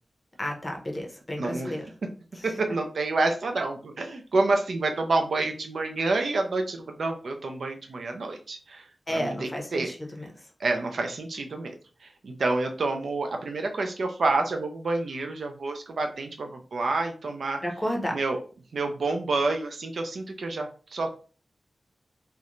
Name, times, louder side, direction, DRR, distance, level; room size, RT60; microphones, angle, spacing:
voice 1, 0.4-1.9 2.4-2.5 9.1-10.3 17.6-18.2, equal, 20° left, 1 dB, 0.6 m, -32 dB
voice 2, 1.4-1.8 2.4-9.9 10.6-11.7 12.0-17.6 18.1-18.4 18.7-21.2, right 3 dB, 80° right, 4 dB, 0.4 m, -28 dB
2.5 x 2.1 x 2.9 m, 0.37 s
wide cardioid pair, 100°, 0 cm